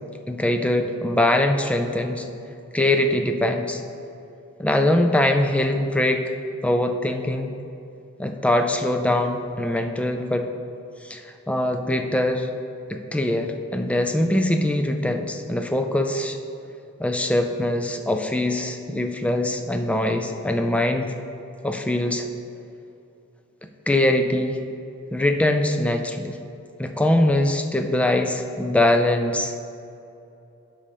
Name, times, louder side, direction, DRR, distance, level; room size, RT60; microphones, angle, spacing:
voice 1, 0.3-2.3 2.7-3.8 4.6-6.2 6.6-7.5 8.2-10.5 11.0-11.2 11.5-12.5 12.9-16.4 17.0-21.1 21.6-22.3 23.9-24.6 25.1-26.4 26.8-29.5, left 1 dB, 5° left, 5 dB, 0.4 m, -22 dB
12.5 x 5.4 x 3.5 m, 2.8 s
head